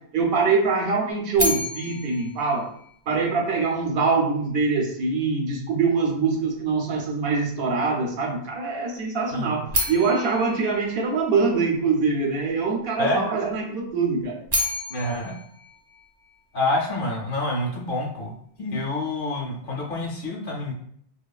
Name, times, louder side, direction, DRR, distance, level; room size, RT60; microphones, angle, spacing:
voice 1, 0.1-2.7 3.1-14.4, right 4 dB, 70° right, 0 dB, 0.8 m, -24 dB
sound 1, 1.3-3.5 9.7-11.9 14.2-16.6, left 1 dB, 30° right, 0.5 m, -31 dB
voice 2, 14.9-15.3 16.5-20.8, left 2 dB, 60° left, -1 dB, 0.7 m, -27 dB
3.0 x 2.2 x 2.3 m, 0.65 s
omnidirectional pair, 1.1 m